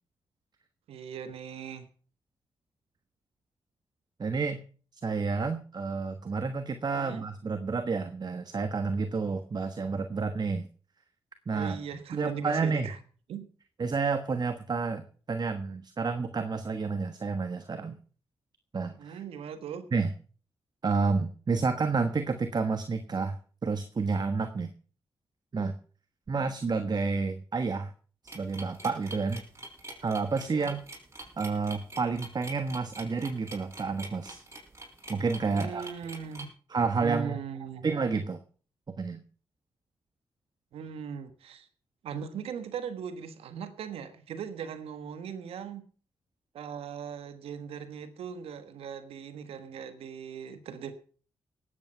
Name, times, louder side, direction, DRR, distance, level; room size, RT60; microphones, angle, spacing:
voice 1, 0.9-1.9 6.9-7.2 11.5-13.0 13.3-13.5 19.0-19.9 30.4-30.7 35.5-36.5 37.0-37.9 40.7-41.7 42.0-45.9 46.5-50.9, right 7 dB, 80° right, 11 dB, 1.4 m, -39 dB
voice 2, 4.2-4.6 5.0-10.7 11.5-11.8 12.1-12.9 13.8-18.0 18.7-19.2 19.9-20.1 20.8-23.4 23.6-24.7 25.5-25.8 26.3-27.9 28.3-29.4 30.0-30.8 31.4-34.4 35.1-35.9 36.7-37.4 37.8-38.4 39.0-39.2, right 4 dB, 45° right, 9 dB, 1.2 m, -30 dB
sound 1, 28.3-36.4, right 2 dB, 30° right, 5.3 m, -44 dB
18.0 x 8.5 x 5.6 m, 0.42 s
supercardioid pair, 45°, 10 cm